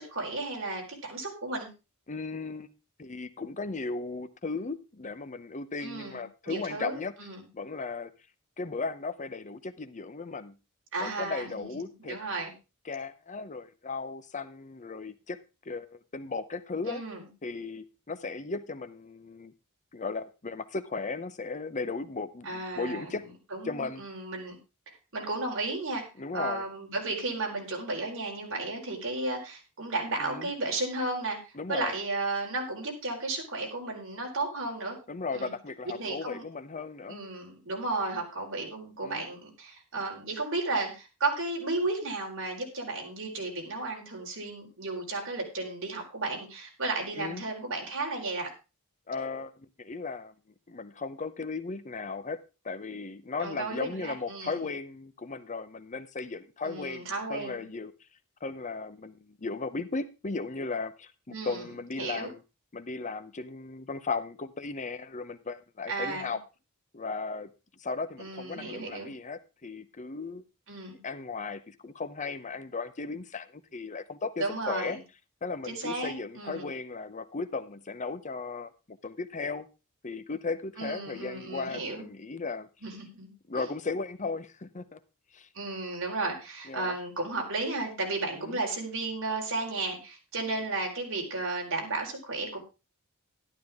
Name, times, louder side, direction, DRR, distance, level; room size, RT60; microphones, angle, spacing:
voice 1, 0.0-1.7 5.8-7.4 10.9-11.7 12.0-12.5 16.9-17.2 22.4-23.2 23.5-24.6 24.9-26.0 26.3-35.0 35.3-35.5 36.0-36.4 37.1-48.5 53.4-54.6 56.6-57.6 61.3-61.6 62.0-62.3 65.9-66.3 68.2-69.1 70.7-71.0 74.4-75.0 75.7-76.7 80.8-82.1 82.8-83.3 83.5-83.7 85.5-92.6, right 2 dB, 60° right, 4.4 m, -34 dB
voice 2, 2.1-2.7 3.0-7.1 7.5-8.1 8.6-10.6 11.0-12.2 12.9-15.4 15.6-17.0 17.4-19.5 19.9-23.3 23.6-24.0 26.2-26.6 30.2-30.5 31.6-32.0 35.1-37.2 39.0-39.2 47.2-47.4 49.1-50.3 50.7-52.4 52.6-57.0 57.3-57.9 58.4-62.4 62.7-66.4 66.9-67.5 67.8-70.4 71.0-75.0 75.4-79.7 80.0-82.7 83.5-85.0 85.3-85.5 86.7-86.9 88.3-88.6, left 4 dB, 35° left, 0.7 m, -36 dB
12.5 x 12.0 x 3.6 m
head